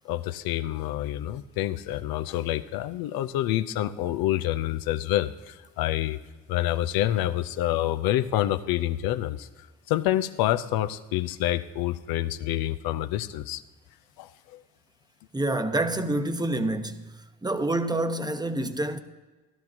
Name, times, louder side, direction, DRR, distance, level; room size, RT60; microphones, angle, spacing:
voice 1, 0.0-6.2 6.5-9.5 9.9-13.6 14.2-14.6, left 13 dB, 85° left, 0.6 m, -27 dB
voice 2, 15.3-17.1 17.4-19.0, right 1 dB, 10° right, 0.9 m, -27 dB
14.5 x 11.5 x 2.9 m
supercardioid pair, 60°, 35 cm